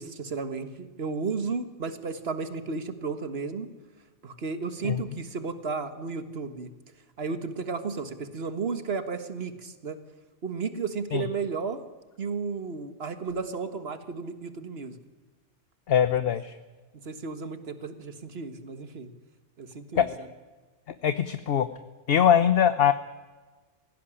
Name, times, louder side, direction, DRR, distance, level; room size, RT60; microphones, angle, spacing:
voice 1, 0.0-3.7 4.2-6.7 7.2-10.0 10.4-11.8 12.2-15.0 17.1-19.1 19.6-20.3, right 4 dB, 60° right, 11 dB, 1.8 m, -33 dB
voice 2, 15.9-16.5 19.9-20.0 21.0-21.7 22.1-22.9, left 9 dB, 55° left, 12 dB, 1.0 m, -22 dB
18.5 x 16.5 x 10.0 m, 1.3 s
omnidirectional pair, 1.2 m